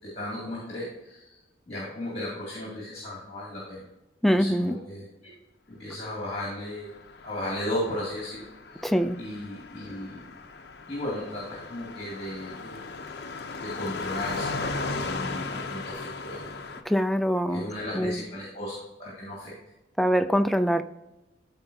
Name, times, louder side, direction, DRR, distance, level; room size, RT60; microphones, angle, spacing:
voice 1, 0.0-1.4 1.7-3.8 4.3-5.3 5.7-6.9 7.2-10.2 10.9-12.9 13.6-16.5 17.5-19.5, left 1 dB, 35° left, -5 dB, 2.4 m, -35 dB
voice 2, 4.2-4.8 8.8-9.2 16.9-17.6 17.9-18.2 20.0-20.8, equal, ahead, 9 dB, 0.3 m, -23 dB
Car passing by, 6.9-16.8, left 3 dB, 60° left, 0.7 m, -36 dB
13.5 x 4.5 x 2.8 m, 0.99 s
head